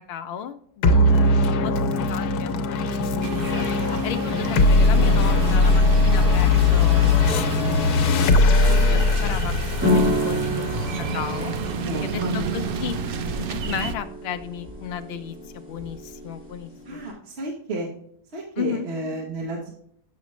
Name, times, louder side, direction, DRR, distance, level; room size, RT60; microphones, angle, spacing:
voice 1, 0.1-3.6 4.0-8.1 8.4-9.5 9.8-10.8 11.1-11.5 12.0-13.0 13.3-17.0 18.6-18.9, left 9 dB, 60° left, 8 dB, 0.7 m, -34 dB
sound 1, 0.8-11.6, left 3 dB, 90° left, 1.2 m, -20 dB
sound 2, 3.2-14.0, right 5 dB, 75° right, 0.5 m, -31 dB
sound 3, 9.8-17.1, left 1 dB, 10° right, 1.9 m, -29 dB
voice 2, 11.7-12.5 16.8-17.9 18.3-19.7, right 2 dB, 45° right, 0 dB, 1.3 m, -31 dB
7.4 x 6.0 x 3.1 m, 0.66 s
omnidirectional pair, 1.6 m